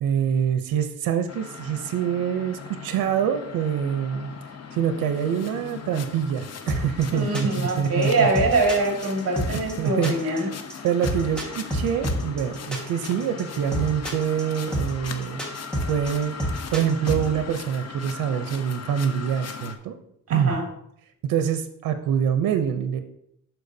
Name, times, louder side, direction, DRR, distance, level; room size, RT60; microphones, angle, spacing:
voice 1, 0.0-4.3 4.7-8.3 9.5-10.5 10.8-15.5 15.9-19.9 20.3-20.5 21.3-23.0, right 8 dB, 90° right, 9 dB, 0.6 m, -25 dB
sound 1, 1.3-19.8, left 6 dB, 50° left, 0.7 m, -39 dB
sound 2, 6.7-17.3, equal, 5° left, 1.4 m, -28 dB
voice 2, 7.1-10.5 20.3-20.6, right 2 dB, 45° right, 0 dB, 2.2 m, -23 dB
12.0 x 4.5 x 2.7 m, 0.75 s
cardioid pair, 125°, 34 cm